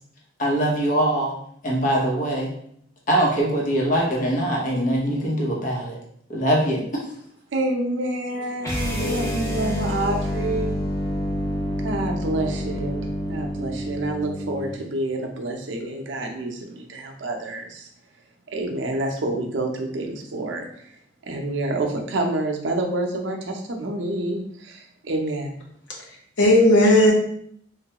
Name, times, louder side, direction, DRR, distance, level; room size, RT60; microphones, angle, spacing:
voice 1, 0.4-1.3 1.6-2.5 3.1-6.0 6.3-6.8, right 1 dB, 45° left, -2 dB, 0.8 m, -22 dB
voice 2, 7.5-10.8 11.8-17.9 18.5-20.7 21.3-25.5, right 2 dB, 75° right, 2 dB, 0.5 m, -28 dB
sound 1, 8.6-14.8, equal, 15° left, 0.5 m, -28 dB
voice 3, 9.0-9.6 26.4-27.1, left 1 dB, 80° left, -2 dB, 0.9 m, -17 dB
3.2 x 2.2 x 2.8 m, 0.66 s
head